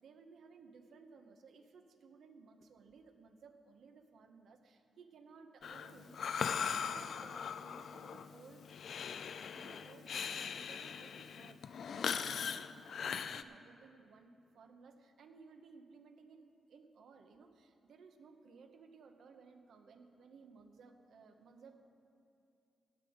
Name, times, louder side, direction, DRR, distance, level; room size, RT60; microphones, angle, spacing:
voice 1, 0.0-8.6 9.5-16.4 16.7-21.8, right 5 dB, 75° right, 6 dB, 0.9 m, -59 dB
Breathing, 5.6-13.4, left 7 dB, 65° left, 0.3 m, -40 dB
17.0 x 7.9 x 5.1 m, 2.6 s
cardioid pair, 110°, 0 cm